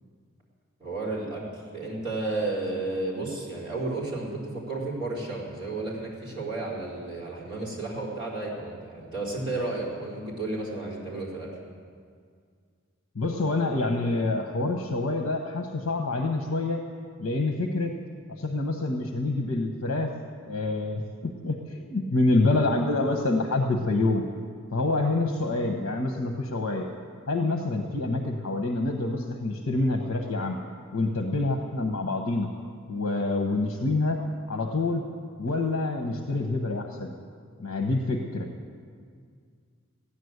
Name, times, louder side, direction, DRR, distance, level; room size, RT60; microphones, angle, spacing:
voice 1, 0.8-11.5, right 2 dB, 20° right, -8 dB, 4.2 m, -32 dB
voice 2, 13.1-16.8 17.2-17.9 18.4-20.1 20.5-24.2 24.7-26.9 27.3-30.6 30.9-32.5 32.9-34.2 34.5-35.0 35.4-37.1 37.6-38.5, left 2 dB, 75° left, 3 dB, 1.1 m, -27 dB
16.0 x 10.0 x 8.0 m, 2.1 s
head